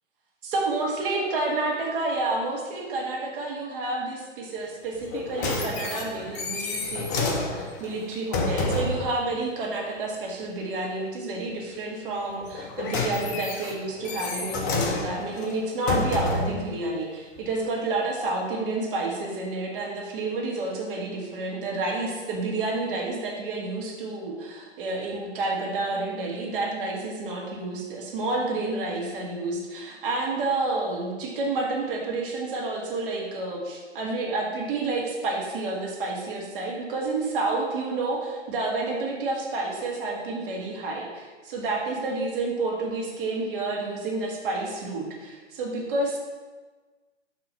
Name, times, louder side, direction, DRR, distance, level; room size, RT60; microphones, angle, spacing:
voice 1, 0.4-46.2, right 2 dB, 50° right, -1 dB, 1.5 m, -29 dB
sound 1, 5.0-9.1 12.4-16.6 17.4-17.5, left 3 dB, 15° left, 0.3 m, -29 dB
6.0 x 3.0 x 5.6 m, 1.3 s
figure-of-eight pair, 125°, 36 cm